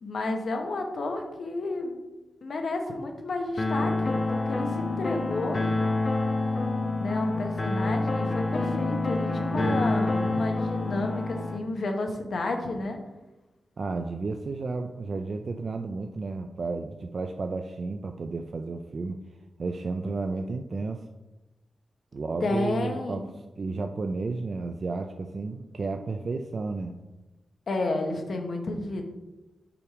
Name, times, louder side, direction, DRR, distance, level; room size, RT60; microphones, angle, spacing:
voice 1, 0.0-2.0 2.4-5.6 7.0-13.0 22.4-23.3 27.7-29.0, left 2 dB, 55° left, 4 dB, 0.9 m, -31 dB
sound 1, 3.6-11.6, left 2 dB, 30° left, 0.5 m, -27 dB
voice 2, 9.5-10.4 13.8-19.2 19.6-21.0 22.1-23.3 23.6-26.9, right 3 dB, 45° right, 5 dB, 0.3 m, -32 dB
6.8 x 3.6 x 4.7 m, 1.1 s
wide cardioid pair, 145°, 0 cm